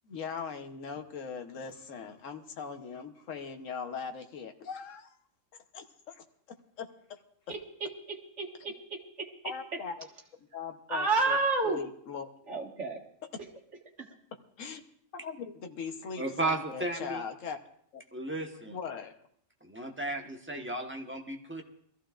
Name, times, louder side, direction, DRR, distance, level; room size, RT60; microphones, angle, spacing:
voice 1, 0.1-5.2 5.7-6.2 6.8-7.2 9.4-10.1 10.5-11.4 11.6-12.3 14.6-14.8 15.1-17.6 17.9-18.0 18.7-19.1, left 6 dB, 75° left, 5 dB, 1.4 m, -40 dB
voice 2, 7.8-9.3 10.9-11.8 12.5-13.0, right 3 dB, 65° right, 0 dB, 2.2 m, -30 dB
voice 3, 16.2-17.2 18.1-18.8 19.6-21.6, right 2 dB, 10° right, 1 dB, 1.1 m, -34 dB
23.0 x 14.5 x 2.5 m, 0.65 s
omnidirectional pair, 1.3 m